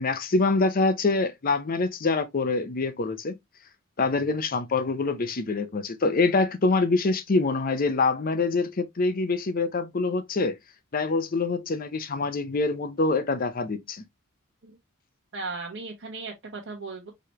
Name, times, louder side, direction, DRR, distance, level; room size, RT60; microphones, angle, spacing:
voice 1, 0.0-3.3 4.0-10.6 10.9-14.0, left 3 dB, 40° left, 0.6 m, -25 dB
voice 2, 15.3-17.1, right 3 dB, 60° right, 1.2 m, -36 dB
4.8 x 3.1 x 3.0 m
head